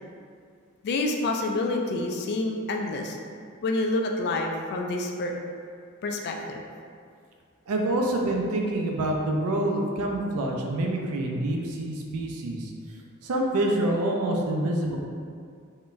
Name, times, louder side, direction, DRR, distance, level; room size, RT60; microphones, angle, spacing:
voice 1, 0.8-3.2 3.6-5.4 6.0-6.6, left 2 dB, 50° left, 2 dB, 0.3 m, -28 dB
voice 2, 7.7-12.7 13.2-15.0, right 1 dB, 85° right, 1 dB, 0.4 m, -26 dB
3.7 x 2.2 x 2.5 m, 2.2 s
head